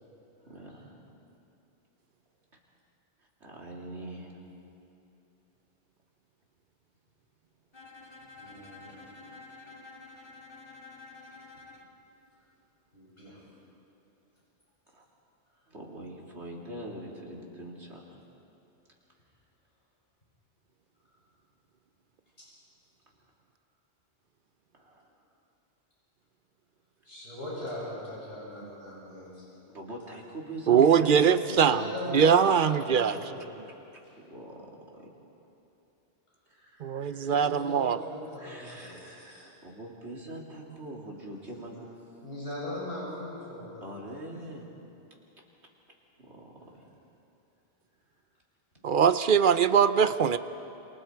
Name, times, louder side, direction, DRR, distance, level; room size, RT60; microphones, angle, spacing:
voice 1, 3.4-4.4 15.7-18.0 24.7-25.1 29.7-32.6 34.2-34.7 34.9-35.1 36.5-37.3 38.4-41.9 43.8-44.7 46.2-46.7, right 1 dB, 75° right, -2 dB, 3.4 m, -43 dB
Bowed string instrument, 7.7-11.9, left 3 dB, 25° left, 1.9 m, -49 dB
voice 2, 8.3-9.0 12.9-13.4 22.4-22.5 27.0-29.4 31.4-33.5 34.0-34.1 37.0-39.5 42.2-43.9, left 1 dB, 60° left, -7 dB, 7.4 m, -40 dB
voice 3, 30.7-31.8 32.1-33.1 36.8-38.0 48.8-50.4, right 7 dB, 55° right, 12 dB, 0.8 m, -22 dB
28.0 x 27.5 x 4.6 m, 2.9 s
omnidirectional pair, 1.1 m